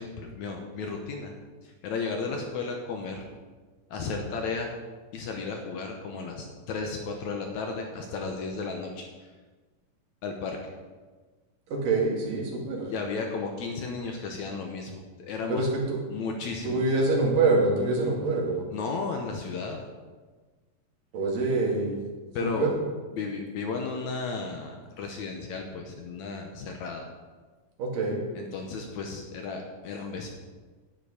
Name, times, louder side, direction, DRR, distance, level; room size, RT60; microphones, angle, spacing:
voice 1, 0.0-1.3 1.6-3.3 3.9-4.7 5.1-9.0 10.2-10.6 12.9-15.7 16.1-16.8 18.7-19.8 22.3-22.7 23.1-27.0 28.4-30.3, left 4 dB, 70° left, 2 dB, 2.1 m, -34 dB
voice 2, 11.7-12.9 15.5-16.0 16.6-18.6 21.1-22.0 22.4-22.7 27.8-28.2, right 3 dB, 90° right, -2 dB, 3.8 m, -25 dB
10.5 x 9.8 x 4.9 m, 1.4 s
omnidirectional pair, 3.8 m